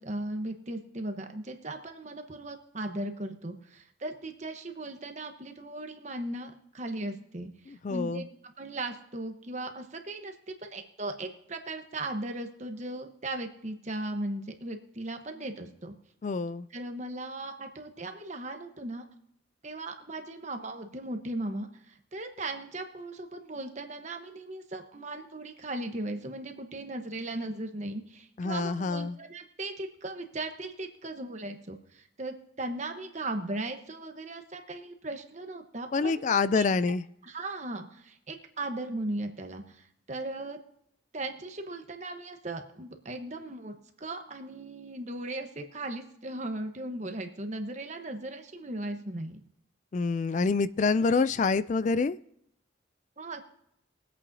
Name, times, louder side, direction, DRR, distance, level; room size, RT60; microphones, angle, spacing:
voice 1, 0.0-15.9 16.7-19.0 19.6-36.2 36.5-36.7 37.2-40.6 41.1-49.4 53.2-53.4, right 2 dB, 35° right, 5 dB, 1.0 m, -37 dB
voice 2, 7.8-8.2 16.2-16.7 28.4-29.2 35.9-37.0 49.9-52.2, left 4 dB, 40° left, 16 dB, 0.3 m, -26 dB
22.0 x 8.5 x 2.7 m, 0.75 s
head